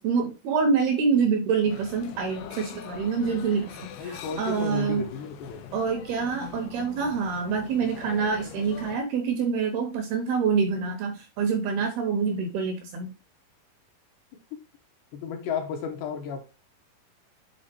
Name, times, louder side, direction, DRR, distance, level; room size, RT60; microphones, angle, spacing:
voice 1, 0.0-4.1 4.4-5.0 5.7-13.1, right 5 dB, 75° right, 2.4 m, -26 dB
sound 1, 1.6-9.0, left 9 dB, 90° left, 3.2 m, -42 dB
voice 2, 4.0-5.8 15.1-16.4, left 6 dB, 75° left, 2.9 m, -33 dB
7.6 x 3.8 x 4.4 m
omnidirectional pair, 5.3 m